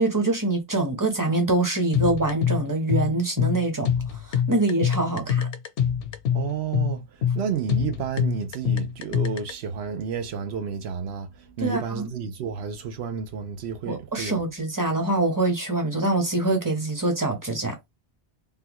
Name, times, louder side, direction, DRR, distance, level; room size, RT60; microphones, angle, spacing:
voice 1, 0.0-3.9 4.3-5.5 11.6-12.1 13.9-17.8, right 2 dB, 20° right, 0.8 m, -24 dB
sound 1, 1.9-9.5, left 8 dB, 70° left, 0.9 m, -25 dB
voice 2, 6.3-7.1 7.3-14.4, right 7 dB, 70° right, 0.9 m, -31 dB
3.5 x 2.2 x 3.0 m
omnidirectional pair, 1.2 m